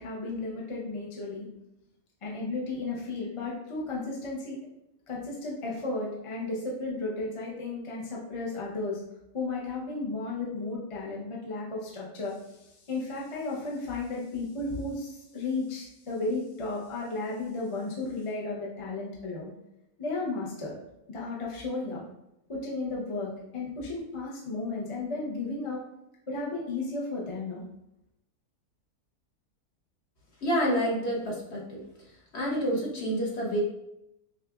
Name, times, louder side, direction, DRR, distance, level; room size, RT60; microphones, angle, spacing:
voice 1, 0.0-1.5 2.2-4.6 5.1-9.0 9.3-19.4 20.0-20.7 21.1-22.0 22.5-25.8 26.3-27.6, left 3 dB, 35° left, -4 dB, 0.5 m, -34 dB
voice 2, 30.4-31.8 32.3-33.6, equal, 50° left, -3 dB, 1.1 m, -28 dB
6.5 x 2.4 x 2.3 m, 0.83 s
omnidirectional pair, 1.6 m